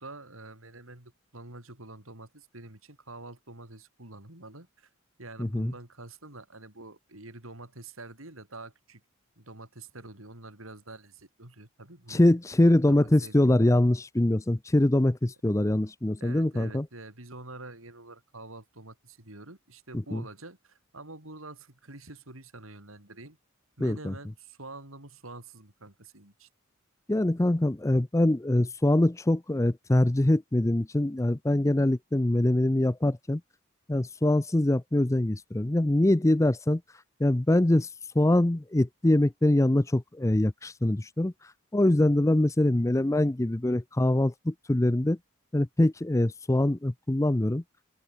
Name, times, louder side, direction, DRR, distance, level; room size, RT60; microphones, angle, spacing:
voice 1, 0.0-4.9 5.2-9.0 9.4-12.2 12.6-13.6 16.2-23.4 23.8-26.5, right 2 dB, 80° right, 5.6 m, -46 dB
voice 2, 5.4-5.7 12.1-16.8 20.1-20.2 23.8-24.1 27.1-33.4 33.9-36.8 37.2-37.9 38.2-41.3 41.7-45.2 45.5-47.6, left 1 dB, 15° left, 0.5 m, -24 dB
head